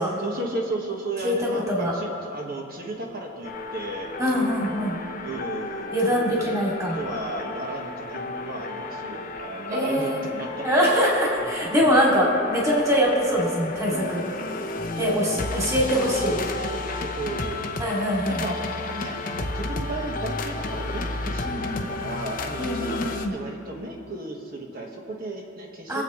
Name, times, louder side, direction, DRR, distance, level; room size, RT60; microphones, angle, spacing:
voice 1, 0.2-4.1 5.2-6.6 6.9-10.9 11.4-11.6 15.0-15.1 15.3-15.6 15.9-17.6 18.3-18.6 18.9-26.0, right 2 dB, 50° right, 0 dB, 1.5 m, -34 dB
voice 2, 1.2-1.9 4.2-4.9 5.9-7.0 9.7-10.2 10.6-14.2 15.0-16.4 17.8-18.4 21.4-21.9 22.6-23.4 25.9-26.0, equal, 15° right, -5 dB, 2.7 m, -23 dB
sound 1, 3.4-23.3, left 2 dB, 45° left, 0.8 m, -33 dB
23.5 x 8.1 x 3.2 m, 2.5 s
head